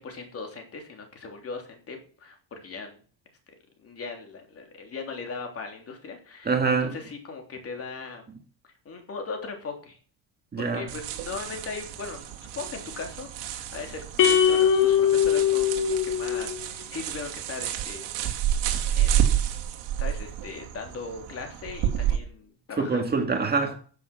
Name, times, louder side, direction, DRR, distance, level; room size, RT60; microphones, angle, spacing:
voice 1, 0.0-3.0 3.8-6.5 6.8-8.3 8.8-10.0 10.6-18.5 18.9-19.3 20.0-23.0, left 4 dB, 35° left, 3.4 m, -39 dB
voice 2, 6.4-7.0 10.5-10.9 22.8-23.7, right 4 dB, 20° right, 1.9 m, -25 dB
sound 1, 10.9-22.2, right 10 dB, 75° right, 2.6 m, -30 dB
sound 2, 14.2-16.7, left 9 dB, 50° left, 2.0 m, -21 dB
13.0 x 7.5 x 6.1 m
cardioid pair, 145°, 43 cm